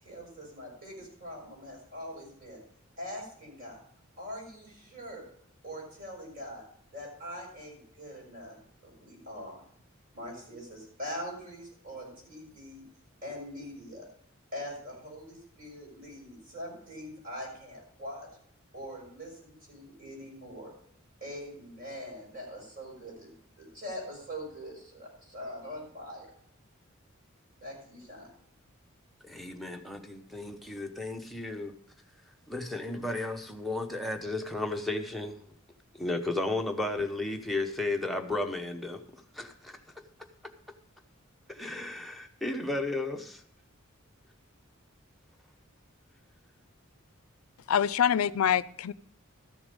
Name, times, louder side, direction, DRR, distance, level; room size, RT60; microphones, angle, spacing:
voice 1, 0.0-2.6 3.0-3.8 4.2-5.3 5.6-6.6 6.9-8.6 8.8-9.6 10.1-12.8 13.2-14.1 14.5-18.3 18.7-20.7 21.2-23.3 23.6-26.3 27.6-28.3, equal, 45° right, -1 dB, 6.1 m, -42 dB
voice 2, 29.2-31.7 32.5-35.4 35.9-39.0 39.3-39.8 41.5-43.4, left 2 dB, ahead, 2 dB, 0.9 m, -34 dB
voice 3, 47.7-48.9, left 8 dB, 85° left, 19 dB, 0.4 m, -25 dB
13.5 x 7.0 x 5.2 m, 0.64 s
head